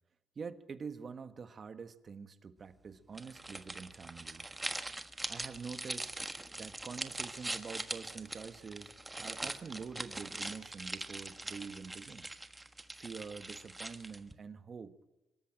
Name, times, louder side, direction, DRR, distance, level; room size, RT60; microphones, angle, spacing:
voice 1, 0.3-4.5 5.3-6.1 6.6-8.9 9.2-12.3 13.0-15.0, right 5 dB, 45° right, 10 dB, 1.4 m, -46 dB
sound 1, 3.1-14.3, right 2 dB, 15° right, 1.4 m, -42 dB
25.0 x 13.5 x 8.9 m, 1.1 s
cardioid pair, 90°, 0 cm